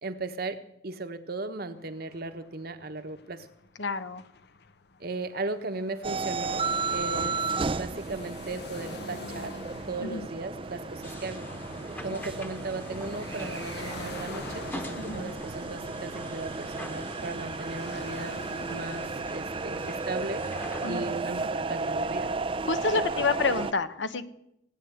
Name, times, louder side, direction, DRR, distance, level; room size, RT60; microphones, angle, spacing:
voice 1, 0.0-3.5 5.0-7.4 7.7-9.6 9.9-11.4 12.0-20.4 20.9-22.3 22.9-23.3, right 3 dB, 55° right, 8 dB, 1.3 m, -37 dB
sound 1, 1.7-20.8, left 4 dB, 60° left, 0.8 m, -48 dB
voice 2, 3.8-4.2 10.0-10.3 12.1-12.2 15.0-15.3 20.8-21.1 22.6-24.3, left 4 dB, 80° left, 12 dB, 1.1 m, -29 dB
sound 2, 6.0-23.7, right 3 dB, 30° right, 0.5 m, -34 dB
sound 3, 11.0-21.2, equal, 10° left, 1.3 m, -43 dB
17.0 x 9.6 x 8.0 m, 0.81 s
head